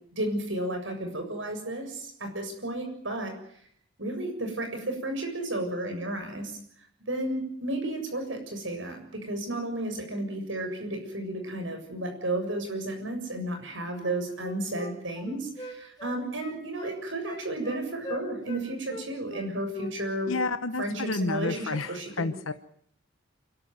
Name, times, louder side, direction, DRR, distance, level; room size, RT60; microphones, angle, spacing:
voice 1, 0.2-3.3 4.0-6.6 7.0-20.3 20.8-22.3, right 1 dB, 70° right, 5 dB, 7.3 m, -33 dB
Wind instrument woodwind instrument, 13.9-18.6 18.9-20.0 20.2-20.4, equal, 20° left, 3.5 m, -41 dB
voice 2, 20.3-22.5, left 3 dB, 85° left, 11 dB, 1.0 m, -30 dB
28.0 x 13.0 x 9.5 m, 0.65 s
head